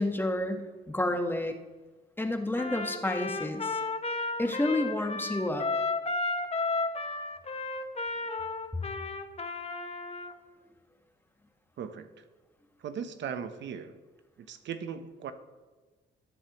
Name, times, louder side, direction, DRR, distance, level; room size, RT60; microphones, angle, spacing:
voice 1, 0.0-1.5 2.2-3.8 4.4-5.7, left 1 dB, 10° left, 5 dB, 1.2 m, -30 dB
Trumpet, 2.5-10.3, left 3 dB, 30° left, 1.0 m, -33 dB
voice 2, 11.8-12.2 12.8-14.0 14.5-15.3, right 7 dB, 65° right, 9 dB, 0.9 m, -38 dB
18.5 x 7.7 x 3.0 m, 1.3 s
cardioid pair, 90°, 20 cm